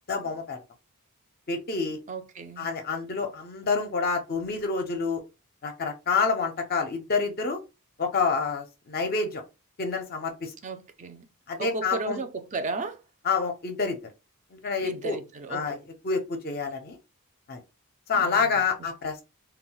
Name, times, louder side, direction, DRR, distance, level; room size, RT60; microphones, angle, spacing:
voice 1, 0.1-0.6 1.5-2.0 2.6-5.2 5.6-7.6 8.0-9.4 9.8-10.5 11.5-12.2 13.2-14.0 14.5-15.2 15.5-15.8 16.0-17.0 17.5-17.6 18.1-19.2, left 4 dB, 45° left, 0.5 m, -28 dB
voice 2, 2.1-2.7 10.6-11.3 11.6-13.0 14.8-15.8 18.1-18.6, right 3 dB, 35° right, 0.4 m, -35 dB
2.3 x 2.1 x 3.7 m
head